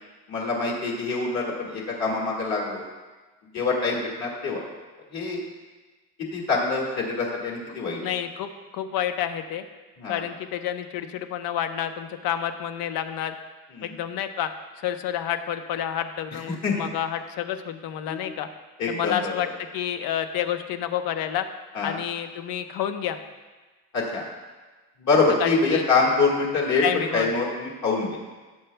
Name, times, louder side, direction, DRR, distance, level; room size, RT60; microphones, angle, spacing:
voice 1, 0.3-2.8 3.5-4.6 5.1-5.4 6.3-8.0 10.0-10.2 13.7-13.9 16.3-16.9 18.1-18.3 18.8-19.3 21.7-22.0 23.9-24.2 25.0-28.2, left 3 dB, 50° left, -2 dB, 1.8 m, -25 dB
voice 2, 8.0-9.6 10.1-13.3 13.8-14.5 14.8-18.5 18.9-19.5 19.7-21.5 21.8-23.2 25.4-25.8 26.8-27.3, left 10 dB, 75° left, 8 dB, 0.8 m, -29 dB
17.0 x 7.8 x 2.2 m, 1.3 s
cardioid pair, 175°, 36 cm